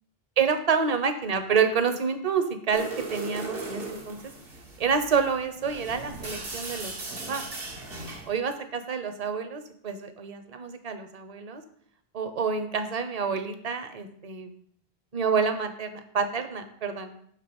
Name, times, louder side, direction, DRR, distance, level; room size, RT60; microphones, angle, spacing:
voice 1, 0.4-4.2 4.8-7.4 8.3-11.6 12.1-14.5 15.1-17.1, right 6 dB, 40° right, 8 dB, 1.0 m, -28 dB
sound 1, 2.7-8.3, right 3 dB, 65° right, 1.7 m, -38 dB
7.4 x 5.7 x 7.1 m, 0.66 s
omnidirectional pair, 1.1 m